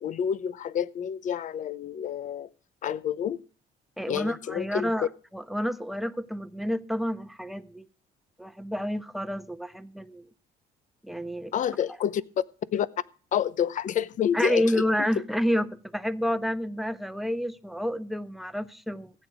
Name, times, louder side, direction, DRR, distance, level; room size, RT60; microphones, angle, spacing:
voice 1, 0.0-2.5 2.8-3.4 4.1-5.1 11.5-12.2 12.7-12.9 13.3-14.8, left 9 dB, 50° left, 0.8 m, -28 dB
voice 2, 4.0-7.9 8.4-10.3 11.0-11.5 14.3-19.1, equal, ahead, 1.0 m, -29 dB
16.0 x 9.4 x 5.0 m
cardioid pair, 110°, 17 cm